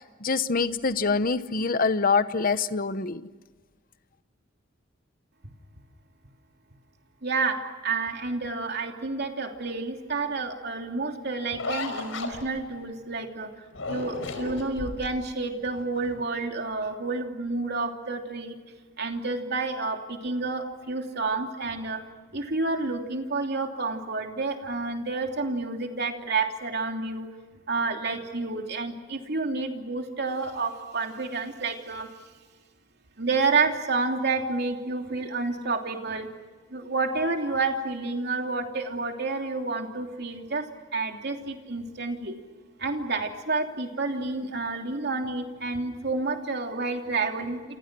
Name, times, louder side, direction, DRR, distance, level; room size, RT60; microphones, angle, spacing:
voice 1, 0.0-3.3, left 4 dB, 45° left, 13 dB, 1.0 m, -25 dB
voice 2, 7.2-13.5 13.9-18.6 19.0-22.0 22.3-27.3 27.7-32.1 33.2-36.3 36.7-40.7 40.9-42.4 42.8-47.8, right 3 dB, 55° right, 3 dB, 3.0 m, -29 dB
sound 1, 11.5-12.8 13.7-15.3 15.7-16.2, left 2 dB, 85° left, 4.8 m, -34 dB
28.5 x 28.0 x 6.1 m, 1.4 s
head